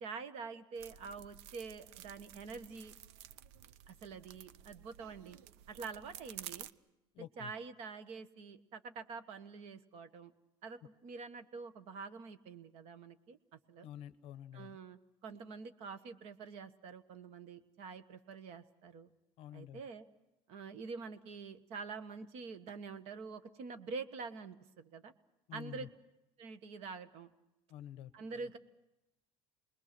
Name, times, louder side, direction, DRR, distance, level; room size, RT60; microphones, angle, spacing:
voice 1, 0.0-2.9 3.9-5.4 5.7-6.7 7.4-10.3 10.6-13.4 13.7-13.9 14.5-19.1 19.5-20.1 20.5-25.1 25.5-25.9 26.4-27.3 28.1-28.6, right 4 dB, 45° right, 11 dB, 1.3 m, -46 dB
sound 1, 0.8-6.7, right 11 dB, 75° right, 0.7 m, -52 dB
voice 2, 7.1-7.5 13.8-14.8 19.4-19.8 25.5-25.9 27.7-28.1, left 11 dB, 40° left, 14 dB, 0.8 m, -48 dB
28.5 x 21.0 x 6.0 m, 0.93 s
cardioid pair, 175°, 14 cm